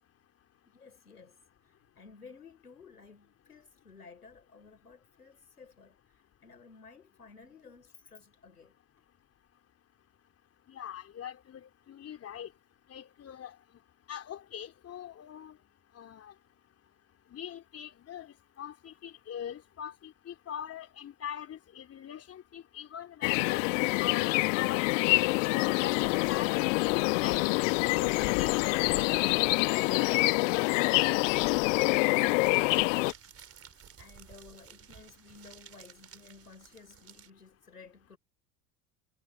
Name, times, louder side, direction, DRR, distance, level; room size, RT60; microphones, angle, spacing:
voice 1, 0.6-1.4 1.6-8.7 30.0-30.3 31.1-31.4 32.7-33.0 34.0-38.2, left 5 dB, 80° left, 4.6 m, -54 dB
voice 2, 10.7-12.5 12.9-13.5 14.1-15.6 16.0-16.3 17.3-23.6 24.0-26.8 27.2-29.1 29.7-30.2, left 9 dB, 30° left, 3.6 m, -42 dB
sound 1, 23.2-33.1, left 28 dB, 55° left, 1.0 m, -26 dB
sound 2, 32.3-37.3, right 8 dB, 30° right, 4.4 m, -54 dB
figure-of-eight pair, 65°, 45 cm